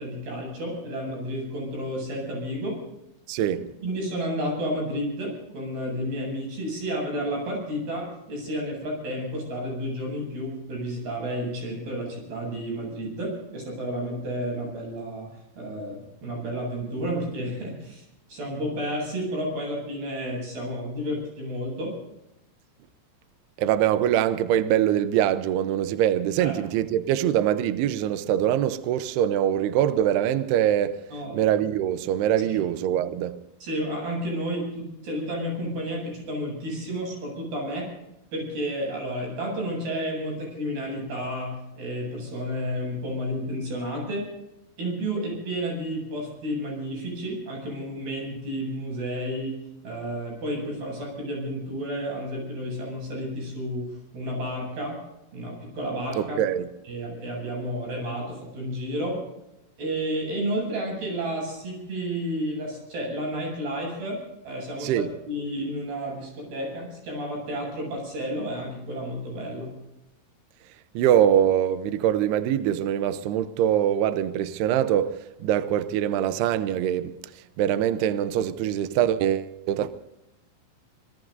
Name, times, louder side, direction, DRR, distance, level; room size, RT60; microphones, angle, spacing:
voice 1, 0.0-2.8 3.8-15.3 15.6-21.9 26.4-26.6 31.1-31.4 32.4-32.5 33.6-37.9 38.3-44.2 44.8-49.5 49.8-53.9 54.1-55.0 55.3-56.4 56.9-59.2 59.8-69.8, equal, 50° right, 9.8 m, -31 dB
voice 2, 3.3-3.7 23.6-31.0 31.3-33.4 56.2-56.7 64.8-65.1 70.9-77.2 77.6-79.9, right 10 dB, 90° right, 2.3 m, -23 dB
25.5 x 21.0 x 2.7 m
omnidirectional pair, 5.8 m